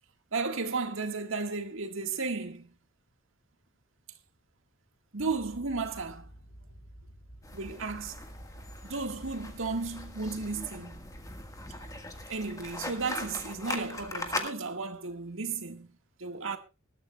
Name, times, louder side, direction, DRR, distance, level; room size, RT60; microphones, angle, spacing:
voice 1, 0.3-2.7 5.1-6.3 7.5-8.2 8.8-11.1 12.3-15.9 16.2-16.6, right 4 dB, 65° right, 1.8 m, -34 dB
sound 1, 5.2-12.3, right 1 dB, 50° left, 4.2 m, -50 dB
sound 2, 7.4-14.5, left 2 dB, 15° left, 1.6 m, -40 dB
21.0 x 13.5 x 2.3 m
head